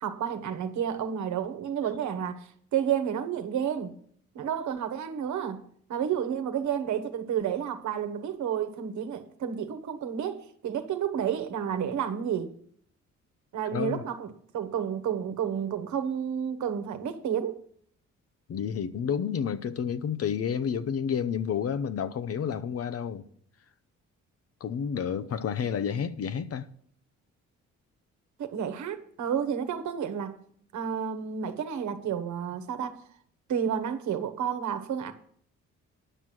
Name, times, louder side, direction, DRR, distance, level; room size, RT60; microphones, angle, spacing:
voice 1, 0.0-3.9 4.3-12.5 13.5-17.6 28.4-30.5 30.7-33.0 33.5-35.1, right 8 dB, 70° right, 1.3 m, -31 dB
voice 2, 13.7-14.0 18.5-23.2 24.6-26.7, left 7 dB, 50° left, 0.8 m, -30 dB
10.0 x 6.1 x 7.5 m
cardioid pair, 90°, 30 cm